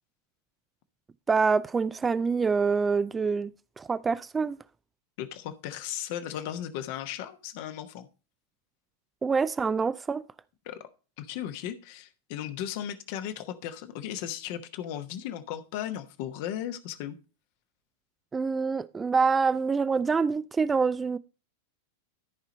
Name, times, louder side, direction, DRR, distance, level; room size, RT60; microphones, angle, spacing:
voice 1, 1.3-3.5 3.8-4.6 9.2-10.2 18.3-21.2, right 5 dB, 15° right, 0.4 m, -26 dB
voice 2, 5.2-8.1 10.6-10.9 11.2-17.2, left 10 dB, 45° left, 1.0 m, -36 dB
13.5 x 5.1 x 4.1 m
figure-of-eight pair, 90°, 0 cm